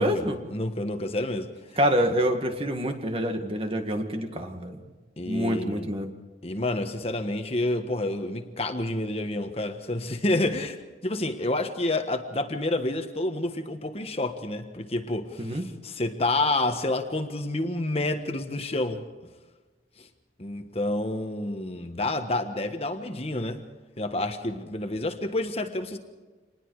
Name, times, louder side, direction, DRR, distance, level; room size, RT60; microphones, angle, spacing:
voice 1, 0.0-0.4 1.8-4.8 5.3-6.1 15.4-15.7, equal, 35° right, 5 dB, 2.0 m, -26 dB
voice 2, 0.5-1.5 5.2-5.9 6.4-19.0 20.0-20.1 20.4-23.6 24.0-26.0, left 2 dB, 35° left, 6 dB, 1.4 m, -29 dB
27.0 x 20.0 x 4.9 m, 1.3 s
head